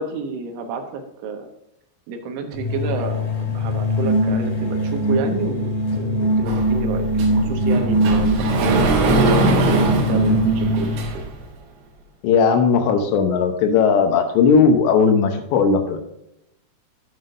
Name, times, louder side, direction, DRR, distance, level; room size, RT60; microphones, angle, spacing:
voice 1, 0.0-1.5 2.1-9.2 9.5-11.2, right 4 dB, 80° right, 4 dB, 3.6 m, -30 dB
sound 1, 2.6-11.1, equal, 55° left, 2.7 m, -21 dB
Sliding door, 6.5-11.4, right 3 dB, 65° right, 3.5 m, -22 dB
voice 2, 12.2-16.0, left 5 dB, 75° left, 6 dB, 3.0 m, -17 dB
10.5 x 7.9 x 2.6 m, 0.83 s
omnidirectional pair, 5.4 m